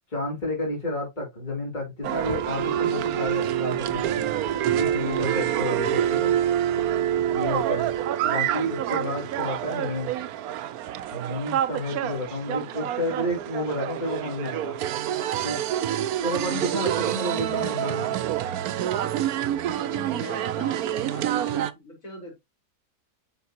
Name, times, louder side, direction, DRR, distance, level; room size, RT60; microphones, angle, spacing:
voice 1, 0.1-4.3 4.8-6.3 7.3-7.9 8.2-10.1 11.1-14.8 15.4-15.6 16.2-18.1, left 1 dB, 25° left, 3.1 m, -31 dB
sound 1, 2.0-8.1, equal, 75° left, 2.3 m, -46 dB
sound 2, 2.0-21.7, right 11 dB, 70° right, 1.1 m, -27 dB
voice 2, 19.9-22.3, equal, 55° left, 4.3 m, -40 dB
9.5 x 5.2 x 2.8 m
omnidirectional pair, 1.7 m